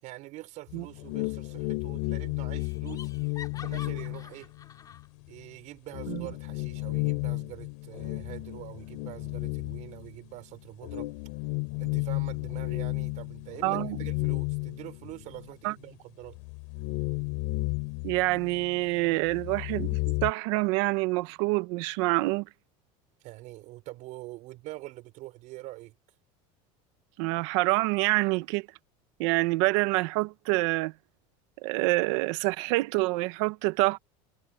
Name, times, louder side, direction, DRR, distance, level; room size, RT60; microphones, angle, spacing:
voice 1, 0.0-3.1 3.6-4.5 5.3-11.1 11.8-16.4 23.2-26.0, right 18 dB, 50° right, 5.9 m, -44 dB
sound 1, 0.7-5.0 5.4-5.5 5.9-10.3 10.8-15.5 15.8-15.9 16.3-18.8 19.1-20.3, left 26 dB, 70° left, 3.6 m, -33 dB
Laughter, 1.3-1.8 2.1-2.2 2.6-5.1, left 7 dB, 25° left, 3.1 m, -47 dB
voice 2, 13.6-14.0 15.6-15.7 18.0-22.5 27.2-28.7 29.2-30.9 31.6-34.0, right 22 dB, 70° right, 1.2 m, -26 dB
cardioid pair, 160°, 16 cm